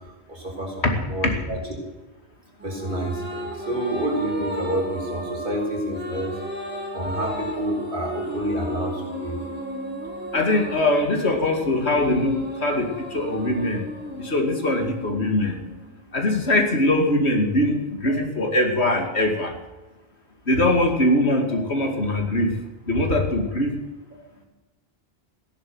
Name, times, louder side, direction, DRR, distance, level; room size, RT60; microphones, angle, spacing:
voice 1, 0.3-1.6 2.6-6.4 6.9-9.4 21.5-21.6 22.1-22.2 24.3-24.5, right 1 dB, 55° right, -1 dB, 4.9 m, -29 dB
sound 1, 2.6-16.2, equal, 10° right, 3.2 m, -34 dB
voice 2, 10.3-13.8 14.2-15.5 16.1-19.5 20.5-22.6 22.9-23.8, left 1 dB, 85° left, 4 dB, 2.7 m, -22 dB
15.5 x 11.0 x 7.9 m, 1.1 s
omnidirectional pair, 1.1 m